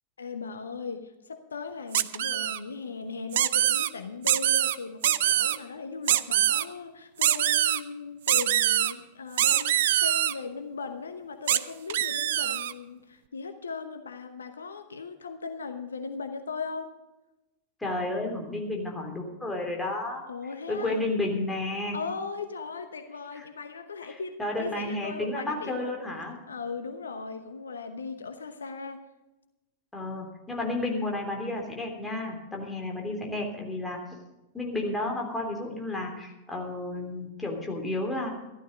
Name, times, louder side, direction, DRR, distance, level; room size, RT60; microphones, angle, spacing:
voice 1, 0.2-16.9 20.3-21.0 21.9-25.9 26.5-29.0, left 4 dB, 70° left, 9 dB, 1.0 m, -38 dB
sound 1, 1.9-2.6 3.3-3.9 4.2-4.7 5.0-5.6 6.1-6.6 7.2-7.8 8.3-8.9 9.4-10.3 11.5-11.6 11.9-12.7, right 12 dB, 55° right, 0.5 m, -24 dB
voice 2, 17.8-20.2 20.7-22.0 23.3-23.5 24.0-26.4 29.9-34.0 34.5-38.3, left 2 dB, 10° left, 0 dB, 3.3 m, -32 dB
14.0 x 12.5 x 5.2 m, 1.0 s
figure-of-eight pair, 90°, 0 cm